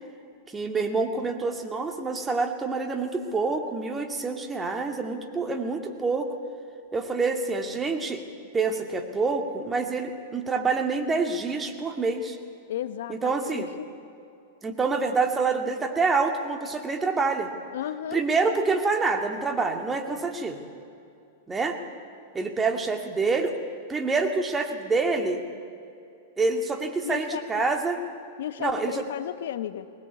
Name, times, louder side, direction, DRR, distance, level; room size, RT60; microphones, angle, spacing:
voice 1, 0.5-6.3 6.9-8.2 8.5-12.4 13.1-13.7 14.6-17.5 18.1-20.6 21.5-21.8 22.3-23.6 23.9-25.4 26.4-28.0 28.6-29.1, right 4 dB, 15° right, 5 dB, 2.3 m, -27 dB
voice 2, 12.7-13.9 17.7-18.2 27.0-27.4 28.4-29.9, left 11 dB, 75° left, 14 dB, 0.9 m, -34 dB
21.5 x 19.5 x 8.4 m, 2.6 s
hypercardioid pair, 120°, 0 cm